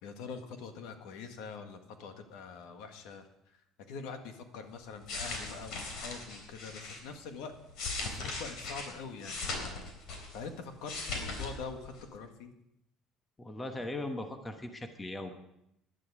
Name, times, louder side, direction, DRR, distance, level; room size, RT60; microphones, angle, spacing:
voice 1, 0.0-3.6 3.9-7.5 8.0-9.9 10.3-12.5, left 5 dB, 75° left, 6 dB, 1.7 m, -44 dB
sound 1, 4.8-7.0 7.5-10.5 10.7-11.5 11.8-12.0, left 3 dB, 60° left, 3.6 m, -39 dB
voice 2, 13.4-15.3, left 2 dB, 10° left, 6 dB, 1.1 m, -39 dB
17.5 x 11.0 x 4.9 m, 0.80 s
cardioid pair, 160°, 0 cm